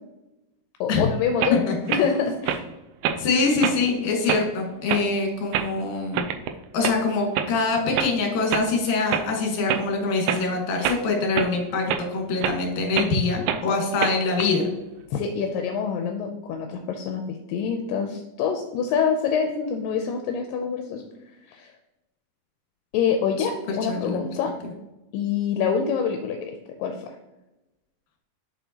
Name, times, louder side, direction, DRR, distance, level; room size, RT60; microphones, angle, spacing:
voice 1, 0.8-1.6 1.9-2.6 15.1-21.0 21.5-21.7 22.9-24.5 25.1-27.2, left 6 dB, 85° left, 4 dB, 2.2 m, -26 dB
sound 1, 1.4-1.6 1.9-2.0 2.5-2.6 3.0-3.2 3.6-3.8 4.3-4.5 4.9-5.1 5.5-5.7 6.1-6.5 6.8-7.0 7.4-7.5 8.0-8.1 8.5-8.6 9.1-9.3 9.7-9.8 10.3-10.4 10.8-11.0 11.4-11.5 11.9-12.0 12.4-12.6 13.0-13.1 13.5-13.6 14.0-14.4, right 9 dB, 85° right, 1.7 m, -25 dB
voice 2, 3.2-6.3 6.7-14.7 23.4-23.5 23.9-24.2, left 3 dB, 65° left, 2 dB, 2.7 m, -24 dB
7.3 x 5.9 x 2.8 m, 0.99 s
omnidirectional pair, 4.0 m